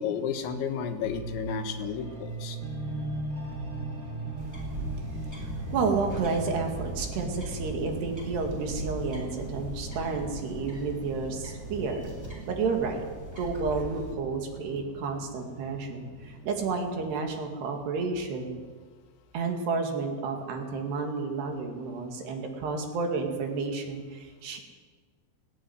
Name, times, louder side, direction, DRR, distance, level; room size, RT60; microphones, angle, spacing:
voice 1, 0.0-2.6, left 7 dB, 85° left, 6 dB, 3.8 m, -32 dB
sound 1, 1.0-17.4, right 2 dB, 40° right, 1.3 m, -39 dB
sound 2, 4.4-14.1, right 1 dB, 5° right, 4.1 m, -40 dB
sound 3, 5.6-12.2, right 1 dB, 85° right, 0.7 m, -51 dB
voice 2, 5.7-12.1 12.5-13.0 13.3-18.6 19.3-24.6, right 4 dB, 70° right, 3 dB, 4.2 m, -31 dB
18.5 x 16.5 x 9.5 m, 1.5 s
omnidirectional pair, 5.2 m